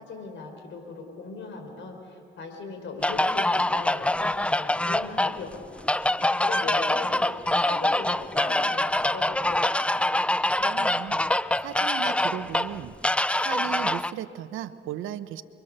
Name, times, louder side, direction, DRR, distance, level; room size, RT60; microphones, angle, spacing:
voice 1, 0.0-5.8 6.4-7.3 7.5-9.8, left 4 dB, 70° left, 4 dB, 4.8 m, -39 dB
sound 1, 3.0-14.1, left 1 dB, 5° left, 0.5 m, -25 dB
voice 2, 10.6-11.2 11.6-13.0 13.4-15.4, right 11 dB, 90° right, 12 dB, 1.0 m, -36 dB
29.0 x 23.5 x 6.7 m, 2.7 s
cardioid pair, 90°, 20 cm